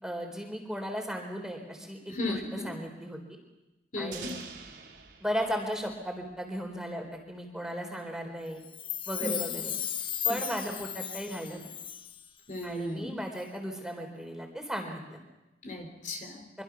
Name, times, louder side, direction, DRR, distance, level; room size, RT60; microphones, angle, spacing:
voice 1, 0.0-2.1 2.6-3.2 4.0-4.4 5.2-8.6 9.1-9.7 10.2-11.6 12.6-15.2, equal, 5° right, 2 dB, 3.9 m, -36 dB
voice 2, 2.1-2.8 3.9-4.4 9.2-9.5 10.3-10.5 12.5-13.2 15.6-16.5, left 2 dB, 45° left, 3 dB, 3.6 m, -36 dB
sound 1, 4.1-6.9, right 6 dB, 80° right, 3.5 m, -47 dB
Chime, 8.6-12.3 12.5-12.6, left 9 dB, 30° left, 0.8 m, -35 dB
25.5 x 24.0 x 6.0 m, 1.0 s
head